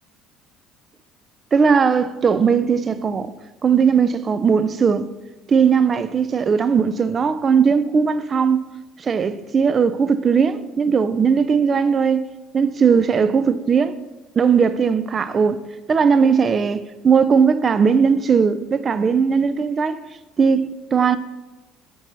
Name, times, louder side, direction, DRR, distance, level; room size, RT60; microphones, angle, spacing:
voice 1, 1.5-3.3 3.6-5.1 5.5-8.7 9.0-12.2 12.5-13.9 14.4-15.6 15.9-20.0 20.4-21.2, right 6 dB, 35° right, 0.3 m, -18 dB
7.6 x 4.5 x 2.7 m
figure-of-eight pair, 60°, 0 cm